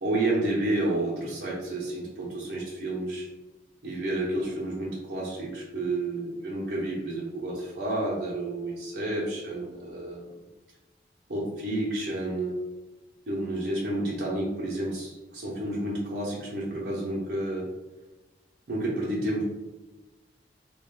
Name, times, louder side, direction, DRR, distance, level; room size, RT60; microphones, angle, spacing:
voice 1, 0.0-3.3 3.8-10.4 11.3-12.6 13.3-17.7 18.7-19.4, right 1 dB, 65° right, -5 dB, 0.7 m, -30 dB
3.4 x 2.2 x 3.5 m, 1.1 s
head